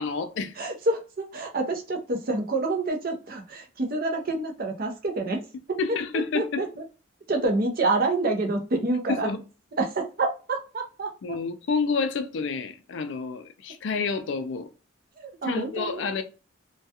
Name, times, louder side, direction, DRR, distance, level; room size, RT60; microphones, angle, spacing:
voice 1, 0.0-0.6 5.8-6.6 9.1-9.4 11.2-14.7 15.4-16.2, left 4 dB, 60° left, 0.3 m, -29 dB
voice 2, 0.6-5.4 5.7-5.8 6.3-6.7 7.3-9.3 9.8-11.1 15.4-16.0, right 2 dB, 45° right, 0.6 m, -27 dB
2.3 x 2.2 x 2.7 m
head